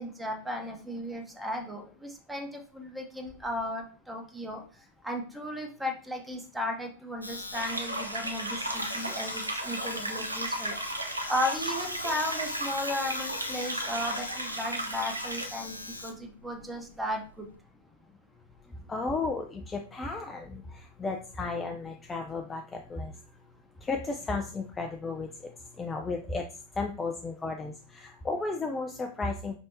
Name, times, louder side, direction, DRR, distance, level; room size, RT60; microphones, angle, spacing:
voice 1, 0.0-4.6 5.0-10.8 11.3-17.5, left 1 dB, 5° right, 3 dB, 1.0 m, -35 dB
Domestic sounds home sounds, 7.2-17.6, left 2 dB, 80° left, 0.5 m, -41 dB
sound 1, 7.5-15.5, right 1 dB, 80° right, 0.7 m, -35 dB
voice 2, 18.9-23.1 23.8-25.5 25.8-26.5 26.8-29.6, left 3 dB, 15° left, 3 dB, 0.4 m, -34 dB
5.1 x 3.4 x 2.8 m, 0.39 s
figure-of-eight pair, 90°, 0 cm